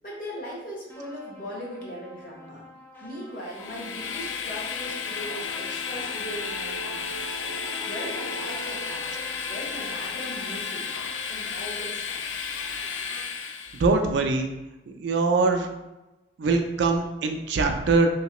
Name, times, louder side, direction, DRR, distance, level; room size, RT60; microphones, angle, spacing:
voice 1, 0.0-2.6 3.0-7.0 7.4-9.0 9.5-10.8 11.3-12.3, equal, 45° left, -4 dB, 1.0 m, -39 dB
sound 1, 0.9-12.1, equal, 10° left, 0.4 m, -43 dB
Train, 3.4-13.9, left 6 dB, 75° left, 0.3 m, -33 dB
voice 2, 13.7-14.5 15.0-15.7 16.4-18.1, right 3 dB, 65° right, 4 dB, 0.4 m, -22 dB
3.1 x 2.9 x 2.9 m, 1.0 s
head